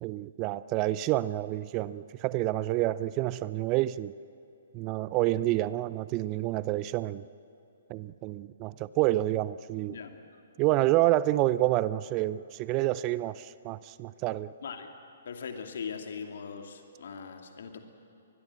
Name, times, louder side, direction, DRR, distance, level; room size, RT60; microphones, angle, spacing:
voice 1, 0.0-4.1 4.7-7.2 7.9-10.0 10.6-14.5, right 16 dB, 30° right, 18 dB, 0.5 m, -28 dB
voice 2, 15.2-17.8, left 6 dB, 60° left, 5 dB, 2.6 m, -40 dB
23.5 x 20.5 x 7.6 m, 3.0 s
figure-of-eight pair, 125°, 0 cm